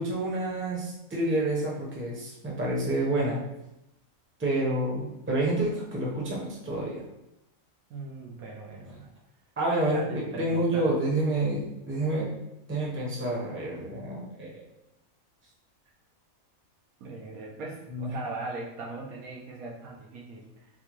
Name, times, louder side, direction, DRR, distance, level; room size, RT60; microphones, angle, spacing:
voice 1, 0.0-3.4 4.4-7.0 9.6-12.3 12.7-14.6 17.9-18.1, right 1 dB, 15° right, -4 dB, 0.6 m, -28 dB
voice 2, 7.9-9.1 9.9-10.9 17.0-20.7, right 3 dB, 90° right, -2 dB, 1.1 m, -39 dB
4.1 x 2.2 x 2.9 m, 0.87 s
omnidirectional pair, 1.5 m